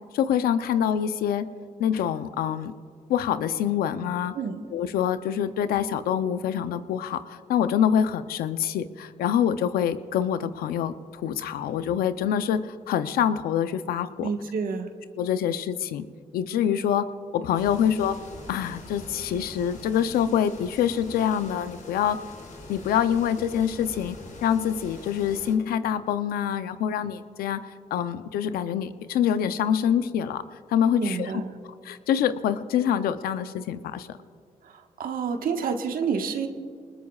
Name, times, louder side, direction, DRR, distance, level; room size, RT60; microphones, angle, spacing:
voice 1, 0.1-1.5 1.8-2.7 3.1-4.3 4.7-14.3 15.2-16.0 16.3-17.1 17.3-18.2 18.5-22.2 22.7-24.2 24.4-27.6 27.9-30.4 30.7-31.3 31.8-34.1, left 9 dB, 85° left, 11 dB, 0.6 m, -25 dB
voice 2, 14.2-14.9 31.0-31.5 34.6-36.5, right 5 dB, 75° right, 5 dB, 1.4 m, -29 dB
sound 1, 17.5-25.5, left 2 dB, 60° left, 3.5 m, -44 dB
24.0 x 20.0 x 2.4 m, 2.2 s
supercardioid pair, 50°, 15 cm